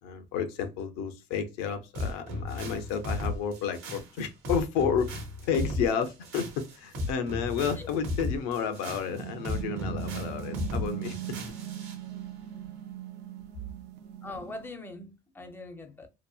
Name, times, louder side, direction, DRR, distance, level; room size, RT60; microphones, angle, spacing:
voice 1, 0.0-11.2, left 7 dB, 90° left, 0.6 m, -31 dB
sound 1, 1.9-12.0, left 2 dB, 75° right, 0.9 m, -35 dB
sound 2, 9.0-14.7, right 11 dB, 60° right, 0.4 m, -39 dB
voice 2, 14.2-16.1, left 2 dB, 10° left, 0.4 m, -42 dB
2.8 x 2.1 x 2.3 m
cardioid pair, 125°, 20 cm